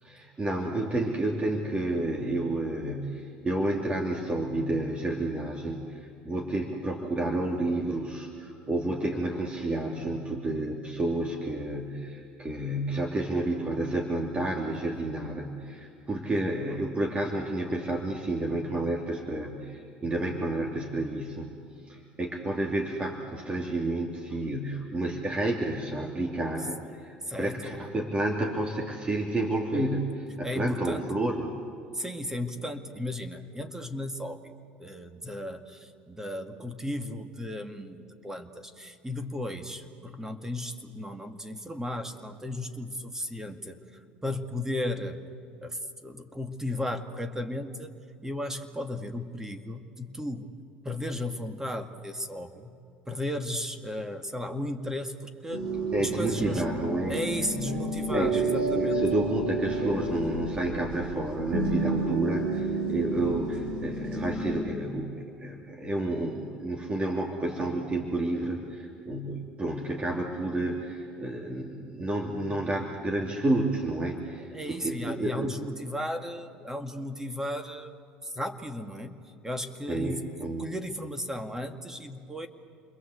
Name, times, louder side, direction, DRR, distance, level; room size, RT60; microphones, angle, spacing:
voice 1, 0.0-21.5 21.9-31.5 55.9-57.1 58.1-75.5 79.9-80.7, right 2 dB, 25° right, 0 dB, 3.1 m, -30 dB
voice 2, 27.3-27.8 30.4-31.1 31.9-34.5 34.8-43.8 44.2-45.2 45.6-47.9 48.2-50.5 50.8-52.7 53.1-55.6 56.0-56.6 57.1-59.0 74.5-77.9 78.2-79.2 79.4-82.5, left 1 dB, 10° right, 7 dB, 2.2 m, -35 dB
sound 1, 55.5-64.6, right 2 dB, 85° right, 6.4 m, -30 dB
29.0 x 22.0 x 8.1 m, 2.5 s
hypercardioid pair, 80°, 5 cm